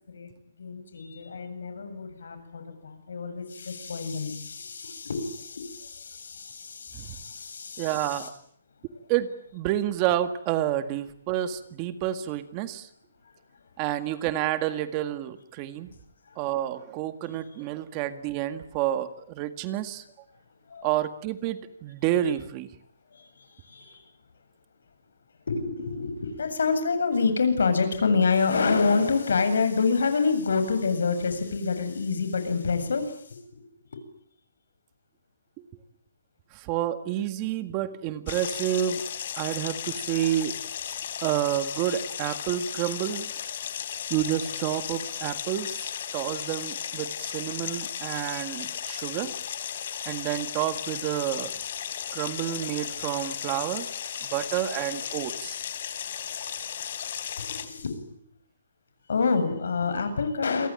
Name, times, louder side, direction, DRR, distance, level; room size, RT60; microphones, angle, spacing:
voice 1, 0.6-8.3 16.3-16.4 20.7-20.9 23.1-24.0 25.5-33.6 53.0-53.5 54.2-54.3 55.4-58.0 59.1-60.7, left 4 dB, 85° left, 10 dB, 7.8 m, -28 dB
voice 2, 7.8-8.3 9.1-12.9 13.8-15.9 16.4-20.0 20.8-22.7 36.5-39.0 39.4-40.6 41.2-43.3 44.1-49.3 50.1-51.6 52.1-53.9 54.2-55.6 57.5-57.6, right 12 dB, 25° right, 11 dB, 1.8 m, -29 dB
sound 1, 38.3-57.6, left 9 dB, 50° left, 3.2 m, -35 dB
29.0 x 23.0 x 8.9 m, 0.62 s
hypercardioid pair, 170°, 0 cm